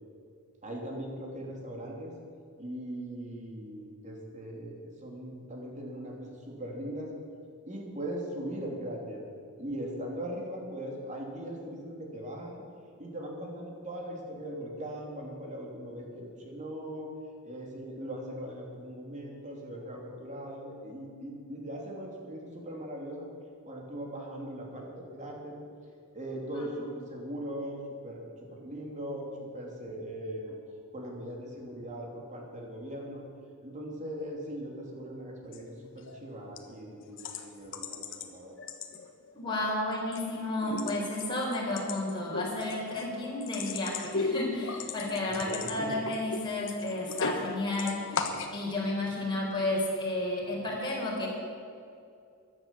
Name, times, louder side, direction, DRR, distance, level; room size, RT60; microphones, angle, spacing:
voice 1, 0.6-2.1 2.6-7.1 7.7-9.3 9.6-12.6 13.0-17.1 17.4-23.3 23.7-25.6 26.1-30.5 30.9-33.2 33.6-38.6 45.4-45.9, right 1 dB, 35° right, 0 dB, 3.0 m, -40 dB
sound 1, 35.4-35.6 36.0-36.3 36.6-36.7 37.2-38.3 38.6-39.3 39.7-40.3 40.5-47.5 47.7-48.5, left 4 dB, 60° left, 1.3 m, -36 dB
voice 2, 39.3-48.2 48.5-51.3, left 2 dB, 20° left, -4 dB, 4.2 m, -32 dB
14.5 x 11.0 x 7.2 m, 2.5 s
head